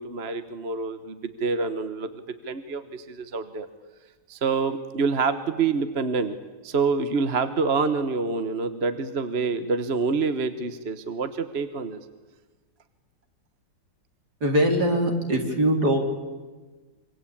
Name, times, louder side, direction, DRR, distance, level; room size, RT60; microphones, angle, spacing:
voice 1, 0.0-3.7 4.3-6.4 6.6-12.0, right 4 dB, 40° right, 10 dB, 1.3 m, -27 dB
voice 2, 14.4-16.0, equal, 60° right, 3 dB, 4.4 m, -22 dB
26.0 x 24.5 x 8.7 m, 1.3 s
omnidirectional pair, 2.0 m